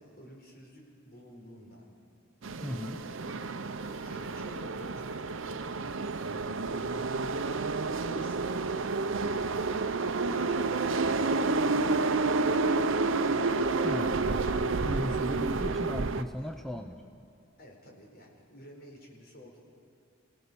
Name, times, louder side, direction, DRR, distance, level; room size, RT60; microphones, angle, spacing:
voice 1, 0.0-1.9 2.6-3.2 3.9-5.7 16.4-16.5 17.6-19.6, equal, 50° left, 0 dB, 4.7 m, -52 dB
sound 1, 2.4-16.2, right 3 dB, 70° right, 0.8 m, -29 dB
voice 2, 2.6-3.0 13.8-14.2 14.8-17.1, equal, ahead, 4 dB, 0.7 m, -36 dB
29.0 x 17.5 x 7.0 m, 2.3 s
head